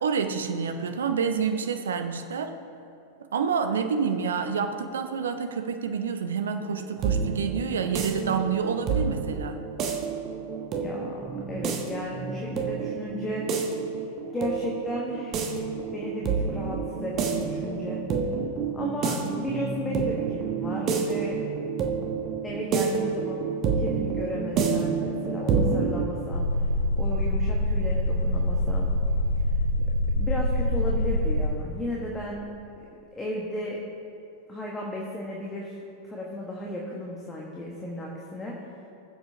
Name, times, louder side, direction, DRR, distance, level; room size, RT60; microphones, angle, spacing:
voice 1, 0.0-2.5 3.3-9.6, right 6 dB, 65° right, 7 dB, 0.7 m, -28 dB
sound 1, 6.6-26.0, right 5 dB, 35° right, 1.2 m, -28 dB
voice 2, 10.8-11.2 11.5-13.4 14.3-18.0 18.7-21.4 22.4-26.5 27.0-28.9 30.2-32.5 32.8-32.9 33.1-33.8 34.5-35.8 36.0-38.6, left 1 dB, 15° left, -3 dB, 1.3 m, -34 dB
sound 2, 26.3-31.5, left 1 dB, 85° left, 1.2 m, -25 dB
18.0 x 7.6 x 2.8 m, 2.6 s
figure-of-eight pair, 90°, 0 cm